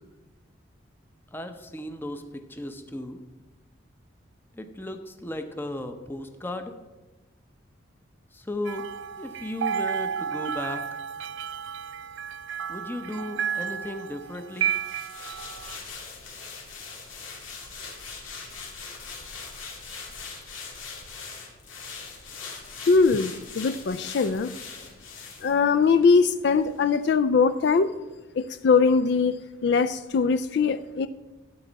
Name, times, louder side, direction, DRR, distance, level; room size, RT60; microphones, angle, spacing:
voice 1, 1.3-3.2 4.5-6.8 8.3-8.9 9.2-11.0 12.7-14.7, left 1 dB, 10° left, 7 dB, 0.6 m, -35 dB
sound 1, 8.6-15.8, right 8 dB, 65° right, 0.4 m, -32 dB
sound 2, 14.5-26.1 26.5-26.6, left 5 dB, 90° left, 2.4 m, -41 dB
voice 2, 22.9-24.5 25.4-27.9 28.4-29.3 29.6-31.1, left 5 dB, 55° left, 12 dB, 0.3 m, -21 dB
12.5 x 8.3 x 4.0 m, 1.2 s
head